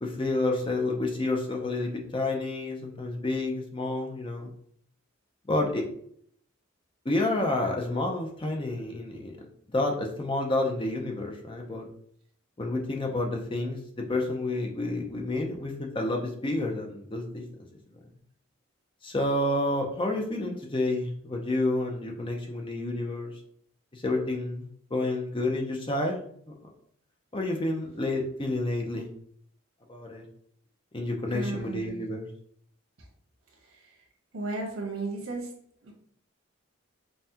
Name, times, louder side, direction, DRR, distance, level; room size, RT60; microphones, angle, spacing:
voice 1, 0.0-4.5 5.5-5.8 7.1-9.3 9.7-11.9 12.6-13.8 14.1-17.4 19.0-23.3 23.9-26.2 27.3-29.1 29.9-30.2 30.9-32.3, left 2 dB, 25° left, 1 dB, 0.6 m, -29 dB
voice 2, 31.3-32.0 34.3-35.5 35.8-35.9, right 3 dB, 85° right, 0 dB, 1.2 m, -34 dB
5.5 x 2.3 x 2.8 m, 0.64 s
head